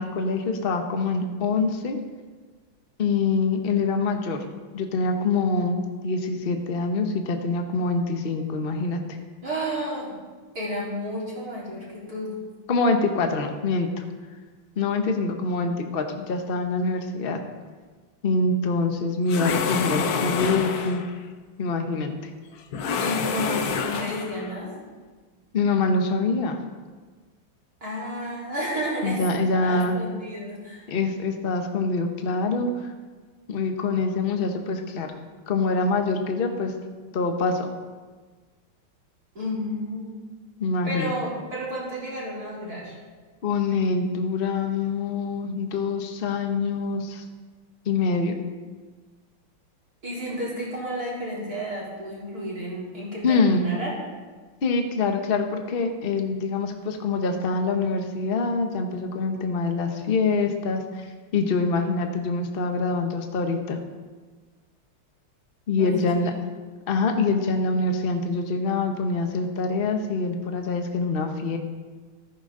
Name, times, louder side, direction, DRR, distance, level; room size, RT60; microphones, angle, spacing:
voice 1, 0.0-2.0 3.0-4.4 4.7-9.0 12.7-14.0 14.8-17.4 18.2-21.0 21.6-22.3 25.5-26.6 29.0-29.9 30.9-32.9 33.5-35.1 35.5-36.7 37.1-37.7 40.6-41.1 43.4-47.2 47.8-48.4 53.2-53.7 54.6-61.1 61.3-63.8 65.7-66.3 66.9-71.6, left 3 dB, 35° left, 4 dB, 0.9 m, -25 dB
voice 2, 9.4-10.1 10.5-12.3 23.0-24.7 27.8-29.3 29.6-30.8 39.3-40.2 40.8-43.0 50.0-53.9 65.8-66.4, equal, 45° right, -6 dB, 4.6 m, -31 dB
sound 1, 19.3-21.1 22.7-24.5, left 6 dB, 60° left, 1.1 m, -27 dB
14.5 x 14.5 x 3.8 m, 1.4 s
omnidirectional pair, 2.4 m